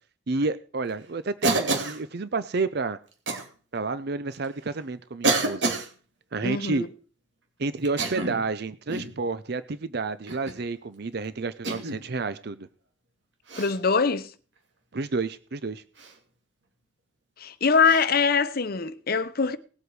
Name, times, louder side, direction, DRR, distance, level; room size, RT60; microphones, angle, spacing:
voice 1, 0.3-3.0 3.7-5.7 6.3-6.8 7.6-12.7 14.9-15.8, right 3 dB, 60° right, 0.6 m, -30 dB
Cough, 1.4-2.0 3.3-3.5 4.3-4.4 5.2-5.9 7.8-8.5 8.9-9.2 10.3-10.6 11.6-12.0 13.5-13.8 16.0-16.1 17.8-18.0, right 3 dB, 75° right, 2.7 m, -27 dB
voice 2, 6.4-6.9 13.6-14.3 17.4-19.6, left 5 dB, 55° left, 0.8 m, -23 dB
19.0 x 8.0 x 4.8 m
head